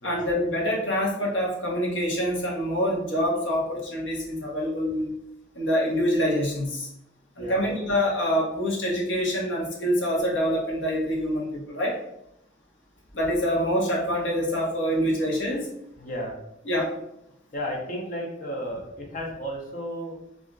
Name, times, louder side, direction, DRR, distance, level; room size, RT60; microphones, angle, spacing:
voice 1, 0.0-5.2 5.5-6.9 7.4-12.0 13.1-15.7 16.7-16.9, equal, 75° left, -3 dB, 0.9 m, -26 dB
voice 2, 16.0-16.4 17.5-20.2, equal, 45° left, 0 dB, 0.6 m, -33 dB
2.4 x 2.0 x 3.7 m, 0.81 s
head